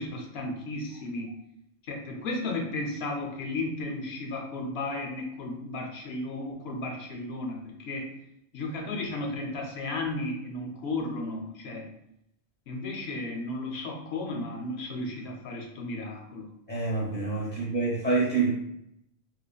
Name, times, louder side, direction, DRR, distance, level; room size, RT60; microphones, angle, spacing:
voice 1, 0.0-1.3 1.8-8.0 8.5-11.9 12.7-16.5 17.4-17.5, left 2 dB, 70° left, 1 dB, 0.8 m, -34 dB
voice 2, 16.7-18.5, right 3 dB, 10° left, -4 dB, 0.7 m, -27 dB
3.1 x 2.2 x 2.3 m, 0.78 s
omnidirectional pair, 1.2 m